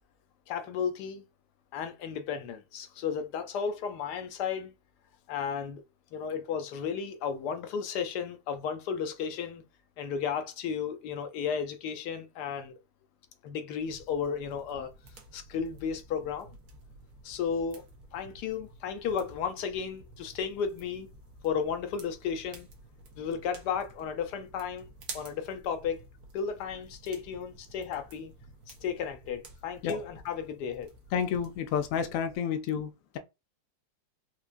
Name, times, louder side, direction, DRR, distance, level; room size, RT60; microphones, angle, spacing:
voice 1, 0.5-1.2 1.7-4.7 5.3-5.8 6.1-9.6 10.0-12.7 13.4-14.9 15.3-16.5 17.2-17.8 18.1-21.1 21.4-22.7 23.2-24.8 25.1-26.0 26.3-28.3 28.8-30.9, left 7 dB, 70° left, 1.1 m, -34 dB
sound 1, 13.8-32.4, right 3 dB, 60° right, 1.3 m, -51 dB
voice 2, 31.1-33.2, left 7 dB, 90° left, 0.7 m, -30 dB
4.5 x 2.4 x 2.5 m
omnidirectional pair, 2.0 m